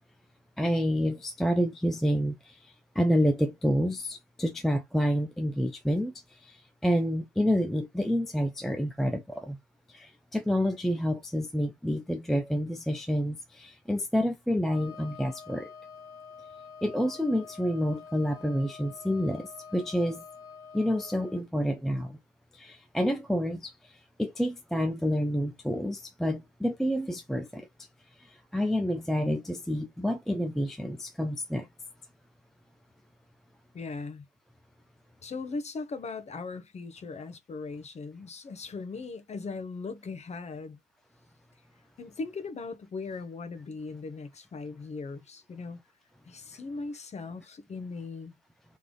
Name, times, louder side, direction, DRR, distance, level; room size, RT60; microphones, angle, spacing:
voice 1, 0.6-9.6 9.9-15.7 16.8-20.2 20.7-22.2 22.5-27.7 28.2-31.7, equal, ahead, 0.3 m, -29 dB
Wind instrument woodwind instrument, 14.6-21.4, left 6 dB, 50° left, 1.4 m, -47 dB
voice 2, 33.7-34.2 35.2-40.8 42.0-45.8 46.2-48.4, left 4 dB, 20° left, 1.0 m, -39 dB
3.4 x 3.4 x 3.8 m
supercardioid pair, 100°, 32 cm